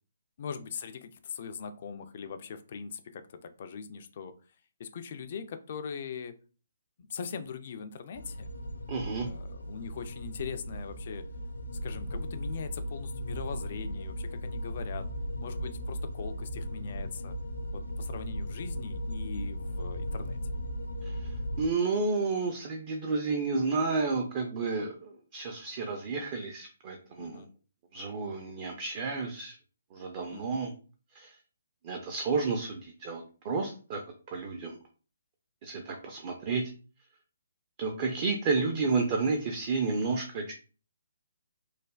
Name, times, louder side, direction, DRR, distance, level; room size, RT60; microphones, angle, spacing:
voice 1, 0.4-4.3 4.8-6.4 7.0-8.5 9.2-11.2 11.8-15.1 15.4-17.3 17.7-20.4 27.2-27.5 30.3-30.6, left 6 dB, 45° left, 8 dB, 0.3 m, -41 dB
sound 1, 8.1-21.7, equal, 80° left, 0.6 m, -37 dB
voice 2, 8.9-9.3 21.0-27.4 27.9-29.6 29.9-30.7 31.1-31.4 31.8-34.0 34.3-34.8 35.6-36.6 37.8-40.5, right 4 dB, 35° right, 3 dB, 0.5 m, -31 dB
3.2 x 2.1 x 2.3 m, 0.37 s
figure-of-eight pair, 135°, 0 cm